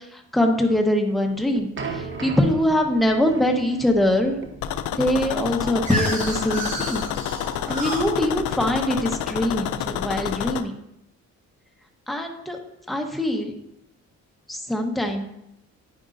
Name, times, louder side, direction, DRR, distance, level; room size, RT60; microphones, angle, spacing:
voice 1, 0.0-4.4 5.0-7.1 7.7-10.7 12.1-12.6 12.9-13.6 14.5-15.2, left 1 dB, ahead, 2 dB, 1.0 m, -23 dB
sound 1, 1.1-8.0, right 4 dB, 40° right, 1.0 m, -38 dB
sound 2, 4.6-10.6, left 10 dB, 80° left, 0.5 m, -29 dB
sound 3, 5.3-10.1, right 1 dB, 25° right, 2.8 m, -33 dB
10.0 x 5.3 x 2.6 m, 0.80 s
cardioid pair, 90°, 30 cm